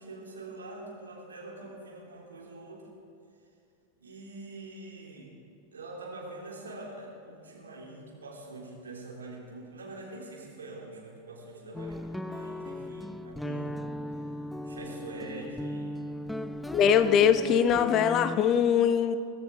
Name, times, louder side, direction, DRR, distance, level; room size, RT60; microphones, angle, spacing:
voice 1, 0.0-2.8 4.0-5.3 5.7-13.8 14.6-16.0, right 2 dB, 70° right, -3 dB, 3.5 m, -44 dB
sound 1, 11.7-18.4, left 1 dB, 5° left, 0.4 m, -37 dB
voice 2, 16.7-19.2, left 8 dB, 35° left, 12 dB, 0.7 m, -22 dB
23.0 x 14.0 x 3.7 m, 2.5 s
figure-of-eight pair, 90°, 0 cm